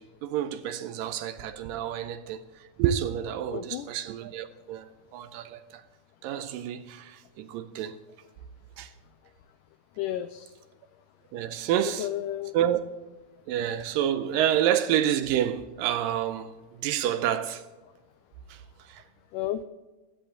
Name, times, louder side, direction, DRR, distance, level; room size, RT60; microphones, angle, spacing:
voice 1, 0.0-5.8 6.2-8.0 8.8-8.9 11.3-12.1 12.5-12.8 13.5-17.6 18.5-19.0, right 10 dB, 80° right, 2.1 m, -29 dB
voice 2, 3.5-3.9 10.0-10.5 12.0-12.5 19.3-19.6, left 12 dB, 90° left, 1.8 m, -32 dB
14.5 x 10.5 x 3.8 m
omnidirectional pair, 4.3 m